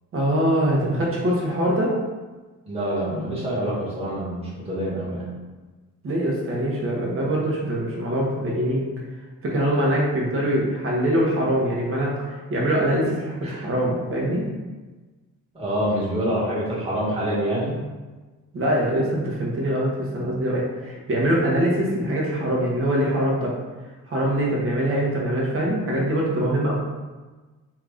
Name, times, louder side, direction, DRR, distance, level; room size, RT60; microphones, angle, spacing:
voice 1, 0.1-1.9 6.0-8.9 9.4-14.4 18.5-23.5 24.1-26.7, right 1 dB, 45° right, -3 dB, 1.0 m, -23 dB
voice 2, 2.7-5.3 13.4-13.6 15.5-17.7, right 1 dB, 20° right, -8 dB, 1.4 m, -26 dB
2.9 x 2.5 x 3.5 m, 1.3 s
cardioid pair, 115°, 32 cm